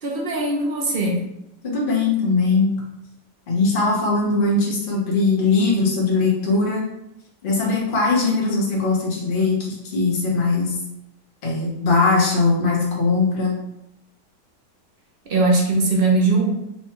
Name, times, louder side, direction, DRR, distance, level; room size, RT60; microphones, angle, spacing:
voice 1, 0.0-1.2 15.3-16.5, right 3 dB, 50° right, -2 dB, 0.7 m, -20 dB
voice 2, 1.6-2.7 3.5-6.8 7.4-10.8 11.4-13.5, left 3 dB, 35° left, -4 dB, 1.1 m, -20 dB
4.5 x 2.3 x 4.4 m, 0.84 s
omnidirectional pair, 1.8 m